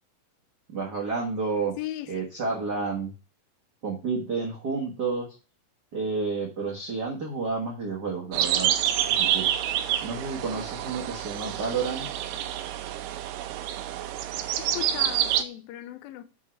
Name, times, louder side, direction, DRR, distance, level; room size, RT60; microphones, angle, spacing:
voice 1, 0.7-1.7 2.1-3.1 3.8-5.3 5.9-8.7 9.2-9.5 10.0-12.1, right 4 dB, 50° right, 1.2 m, -30 dB
voice 2, 1.8-2.2 14.6-16.2, left 14 dB, 85° left, 2.5 m, -37 dB
sound 1, 8.3-15.4, right 11 dB, 80° right, 2.2 m, -27 dB
9.2 x 3.7 x 4.5 m
omnidirectional pair, 4.1 m